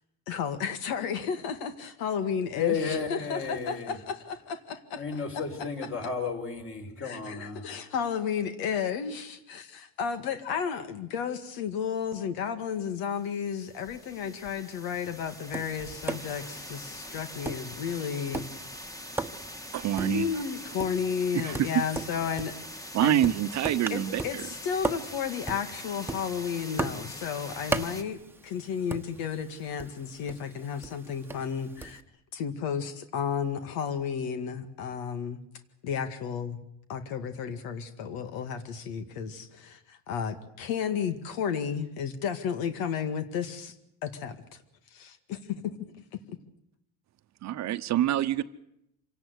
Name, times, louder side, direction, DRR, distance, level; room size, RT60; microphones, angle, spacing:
voice 1, 0.3-5.7 7.0-18.8 20.0-23.3 23.9-28.2 28.4-32.0 32.3-35.4 35.8-36.6 36.9-43.7 44.0-44.6 44.9-45.8, left 7 dB, 85° left, 2.1 m, -33 dB
voice 2, 2.6-3.9 5.0-7.6, left 5 dB, 40° left, 5.3 m, -32 dB
sound 1, 13.1-28.0, equal, 10° left, 1.7 m, -43 dB
Tap, 15.3-32.0, right 3 dB, 5° right, 1.2 m, -39 dB
voice 3, 19.7-20.2 21.4-21.7 22.9-24.4 47.4-48.4, right 12 dB, 50° right, 1.0 m, -26 dB
26.0 x 18.0 x 8.2 m
cardioid pair, 135°, 35 cm